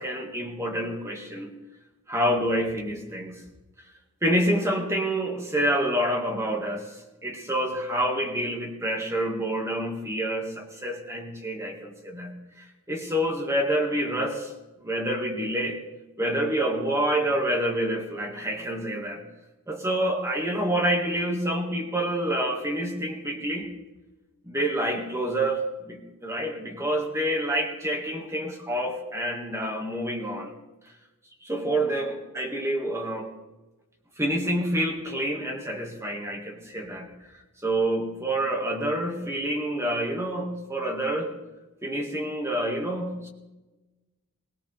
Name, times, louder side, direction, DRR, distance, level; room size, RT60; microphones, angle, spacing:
voice 1, 0.0-1.5 2.1-3.4 4.2-14.5 14.8-15.8 16.2-19.2 19.7-23.7 24.5-30.5 31.4-33.3 34.2-37.1 37.6-41.4 41.8-43.3, right 1 dB, 10° right, 2 dB, 1.9 m, -28 dB
21.0 x 17.5 x 3.4 m, 1.1 s
head